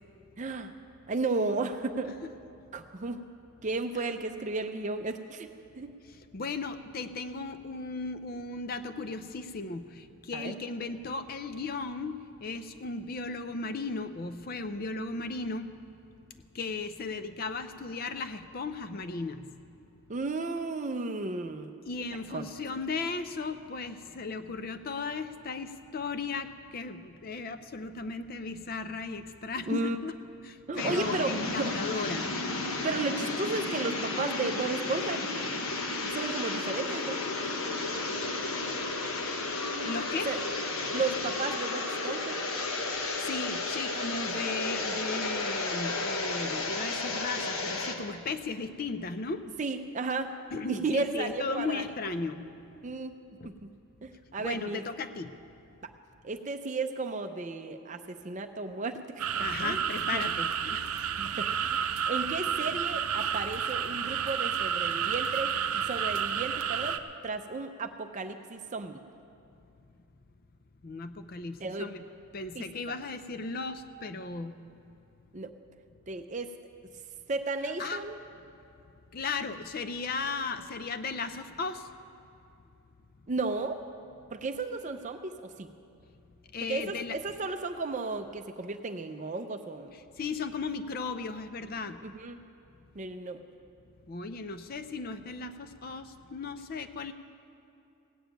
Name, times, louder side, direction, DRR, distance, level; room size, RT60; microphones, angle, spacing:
voice 1, 0.4-0.7 1.1-2.2 2.7-3.2 3.6-5.5 5.7-5.9 10.3-10.5 20.1-21.7 22.3-22.5 29.7-30.0 30.7-31.7 32.8-35.3 36.1-37.5 40.3-40.4 40.9-42.4 49.6-50.3 50.7-51.8 52.8-53.2 53.4-53.7 54.0-54.8 56.2-59.8 60.1-60.2 61.2-69.0 71.6-71.9 72.5-72.6 75.3-75.5 76.1-76.5 77.3-78.2 83.3-83.8 84.3-85.7 86.7-89.9 92.0-92.4 92.9-93.4, right 3 dB, 35° right, 7 dB, 0.5 m, -34 dB
voice 2, 6.3-15.7 16.5-19.5 21.9-30.1 30.4-32.3 39.8-40.3 43.0-49.4 50.5-52.5 53.4-53.5 54.4-55.3 59.4-61.1 70.8-72.0 72.3-74.6 77.8-78.0 79.1-81.9 86.5-87.1 90.2-92.0 94.1-97.1, left 4 dB, 40° left, 10 dB, 0.5 m, -36 dB
sound 1, 30.8-48.0, left 3 dB, 70° left, 1.2 m, -33 dB
sound 2, 59.2-67.0, right 8 dB, 90° right, 0.6 m, -30 dB
17.0 x 7.1 x 9.0 m, 2.6 s
head